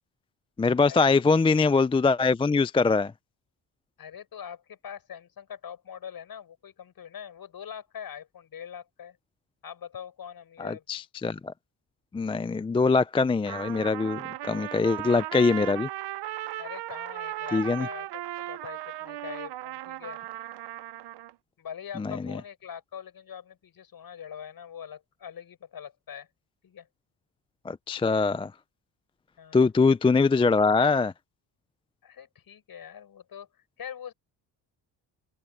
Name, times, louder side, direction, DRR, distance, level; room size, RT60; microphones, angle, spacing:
voice 1, 0.6-3.1 10.6-11.5 12.1-15.9 17.5-17.9 22.0-22.4 27.7-28.5 29.5-31.1, left 4 dB, 15° left, 0.4 m, -23 dB
voice 2, 4.0-9.2 9.6-10.8 16.6-18.1 18.4-20.2 21.6-26.3 26.6-26.9 29.4-29.7 32.0-34.1, left 8 dB, 55° left, 6.4 m, -43 dB
Trumpet, 13.5-21.3, right 15 dB, 65° right, 0.9 m, -37 dB
open air
cardioid pair, 85°, 43 cm